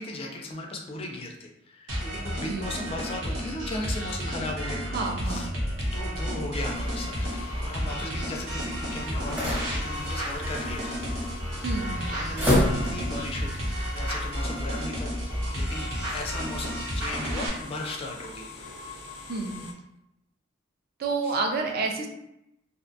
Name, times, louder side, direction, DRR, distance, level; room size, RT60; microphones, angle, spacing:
voice 1, 0.0-4.9 5.2-5.5 5.9-7.2 7.6-10.9 12.1-18.5 21.2-21.4, left 2 dB, 30° left, 2 dB, 0.3 m, -37 dB
sound 1, 1.9-17.5, equal, 75° right, 0.9 m, -31 dB
voice 2, 2.4-2.7 4.9-5.4 11.6-12.0 19.3-19.6 21.0-22.1, right 3 dB, 50° right, 2 dB, 0.4 m, -29 dB
sound 2, 5.6-13.3, left 1 dB, 10° right, 0.7 m, -32 dB
sound 3, 6.5-19.7, left 4 dB, 90° left, 0.5 m, -43 dB
2.6 x 2.1 x 2.6 m, 0.83 s
head